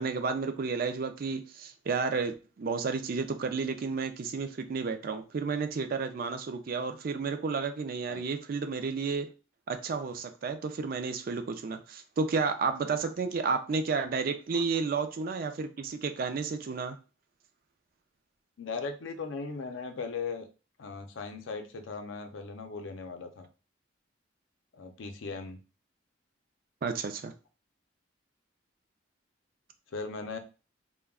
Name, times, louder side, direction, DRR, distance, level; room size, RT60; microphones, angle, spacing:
voice 1, 0.0-9.3 9.7-17.0 26.8-27.3, right 4 dB, 50° right, 8 dB, 0.3 m, -32 dB
voice 2, 18.6-20.5 20.8-23.5 24.7-25.6 29.9-30.4, left 4 dB, 85° left, 6 dB, 0.5 m, -38 dB
2.3 x 2.2 x 3.5 m, 0.33 s
head